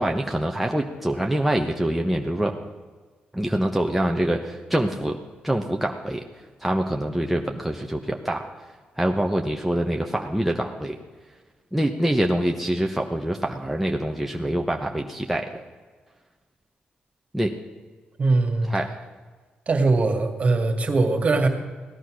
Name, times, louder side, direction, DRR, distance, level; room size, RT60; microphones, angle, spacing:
voice 1, 0.0-2.5 3.3-5.2 5.4-6.2 6.6-8.5 9.0-11.0 11.7-15.6 17.3-17.6 18.7-18.9, right 1 dB, 5° right, 1 dB, 1.1 m, -25 dB
voice 2, 18.2-18.7 19.7-21.5, right 3 dB, 40° right, 5 dB, 2.2 m, -21 dB
17.0 x 11.0 x 6.3 m, 1.4 s
cardioid pair, 85°, 3 cm